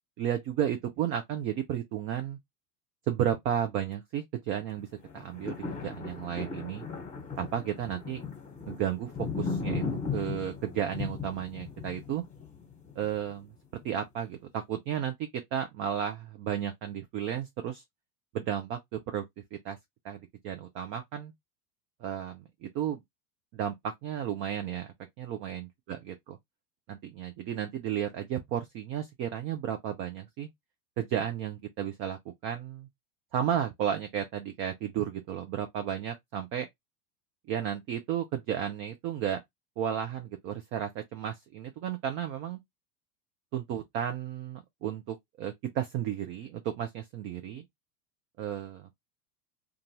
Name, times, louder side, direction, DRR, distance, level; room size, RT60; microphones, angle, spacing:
voice 1, 0.2-2.4 3.1-4.9 5.1-6.8 7.4-8.2 8.7-9.1 9.4-9.8 10.1-12.2 13.0-13.5 13.8-17.8 18.3-19.2 19.5-19.8 20.0-21.3 22.0-23.0 23.5-26.4 26.9-30.5 31.0-32.9 33.3-36.7 37.5-39.4 39.8-42.6 43.5-47.7 48.4-48.9, right 9 dB, 30° right, 0.4 m, -33 dB
sound 1, 5.0-13.3 13.8-13.9, left 5 dB, 15° left, 1.3 m, -37 dB
2.5 x 2.3 x 2.9 m
hypercardioid pair, 90°, 47 cm